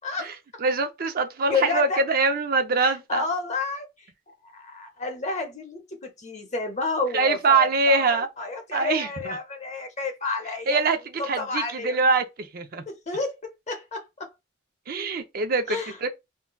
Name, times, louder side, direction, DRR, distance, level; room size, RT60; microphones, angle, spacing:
voice 1, 0.6-3.2 7.1-8.3 8.7-9.4 10.7-11.0 11.2-12.8 14.9-16.1, right 4 dB, 50° right, 0.5 m, -23 dB
voice 2, 1.5-2.0 2.8-4.1 4.4-10.8 11.4-11.9 12.9-14.3 15.7-16.0, left 3 dB, 35° left, 0.8 m, -30 dB
3.8 x 2.2 x 2.2 m
head